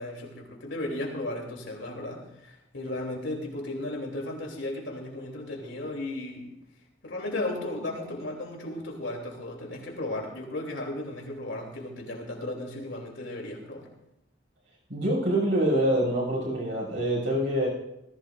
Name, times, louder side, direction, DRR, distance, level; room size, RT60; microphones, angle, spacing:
voice 1, 0.0-6.5 7.0-13.9, left 1 dB, 75° left, 0 dB, 3.3 m, -35 dB
voice 2, 14.9-17.7, right 1 dB, 70° right, -4 dB, 6.6 m, -25 dB
19.0 x 15.0 x 2.6 m, 0.87 s
head